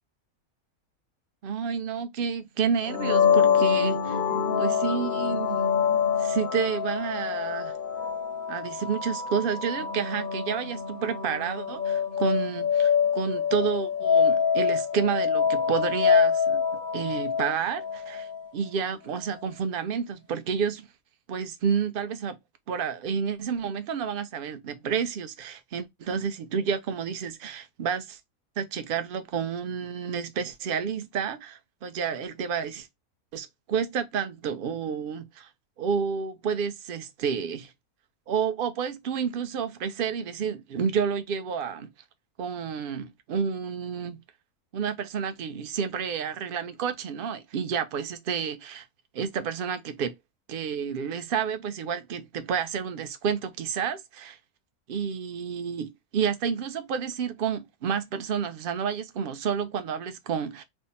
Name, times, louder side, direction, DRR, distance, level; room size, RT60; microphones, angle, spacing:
voice 1, 1.4-4.2 4.6-5.6 6.2-7.8 8.5-16.6 16.9-18.3 18.5-20.9 21.3-22.4 22.7-28.2 28.6-32.9 33.3-35.5 35.8-37.7 38.3-41.9 42.4-44.2 44.7-48.8 49.1-50.1 50.5-54.4 54.9-60.6, right 7 dB, 65° right, 0.5 m, -30 dB
sound 1, 2.8-18.5, left 7 dB, 60° left, 0.5 m, -25 dB
3.5 x 2.0 x 4.0 m
omnidirectional pair, 1.6 m